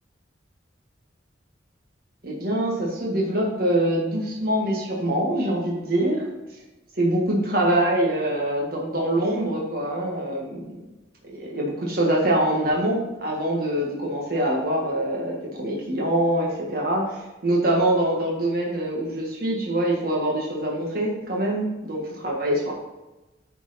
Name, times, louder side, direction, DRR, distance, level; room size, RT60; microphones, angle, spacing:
voice 1, 2.2-6.3 6.9-10.8 11.3-22.7, right 1 dB, 50° right, -3 dB, 1.6 m, -24 dB
9.5 x 4.6 x 4.2 m, 1.0 s
head